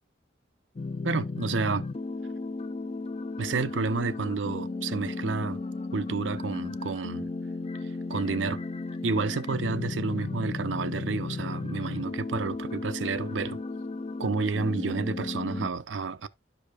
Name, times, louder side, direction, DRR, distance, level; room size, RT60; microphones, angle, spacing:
sound 1, 0.8-15.7, left 3 dB, 35° left, 0.4 m, -35 dB
voice 1, 1.0-1.9 3.4-5.6 5.9-7.3 8.1-8.6 9.0-13.6 14.2-16.3, right 4 dB, 85° right, 0.6 m, -30 dB
12.5 x 5.0 x 2.3 m
head